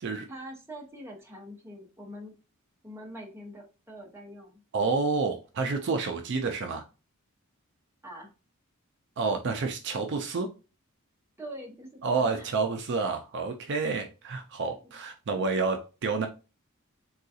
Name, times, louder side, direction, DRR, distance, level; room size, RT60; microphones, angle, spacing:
voice 1, 0.3-2.3 2.8-4.6 8.0-8.3 11.4-12.5 14.6-14.9, equal, 10° right, 0 dB, 0.7 m, -44 dB
voice 2, 4.7-6.8 9.2-10.5 12.0-16.3, right 4 dB, 55° right, 5 dB, 0.4 m, -29 dB
3.7 x 2.3 x 2.6 m, 0.32 s
head